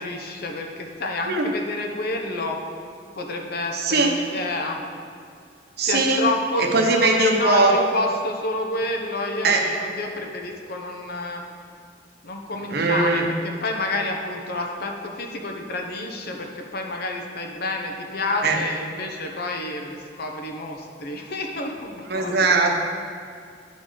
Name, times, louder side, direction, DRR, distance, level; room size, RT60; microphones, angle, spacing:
voice 1, 0.0-2.6 3.2-4.8 5.8-11.4 12.2-22.5, left 2 dB, 60° left, 2 dB, 0.8 m, -29 dB
voice 2, 3.7-4.1 5.8-6.3 6.6-7.7 9.4-9.6 12.7-13.3 18.4-18.6 22.1-22.7, right 3 dB, 60° right, 1 dB, 0.9 m, -20 dB
10.5 x 4.0 x 5.0 m, 2.3 s
head